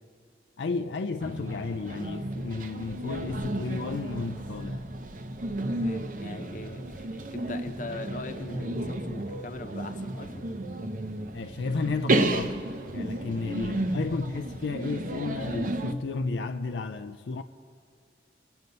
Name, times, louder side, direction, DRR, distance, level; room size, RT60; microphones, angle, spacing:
voice 1, 0.6-4.8 11.3-12.6 12.9-17.4, left 4 dB, 85° left, 0.5 m, -32 dB
sound 1, 1.2-15.9, right 1 dB, 50° right, 0.8 m, -32 dB
voice 2, 5.7-10.4 13.3-13.4, left 2 dB, 45° left, 0.9 m, -41 dB
23.0 x 7.9 x 5.3 m
head